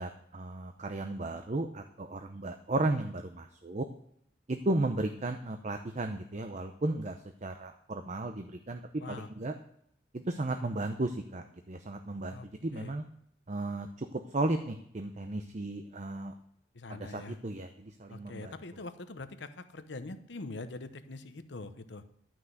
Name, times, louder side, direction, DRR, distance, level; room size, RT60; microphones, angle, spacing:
voice 1, 0.0-3.9 4.5-8.8 9.1-9.5 10.1-13.0 13.5-16.3 16.9-18.5, right 2 dB, 40° right, 6 dB, 0.7 m, -34 dB
voice 2, 9.0-9.3 12.3-13.0 16.7-17.4 18.1-22.0, left 2 dB, 70° left, 10 dB, 0.9 m, -43 dB
11.5 x 6.1 x 7.9 m, 0.72 s
head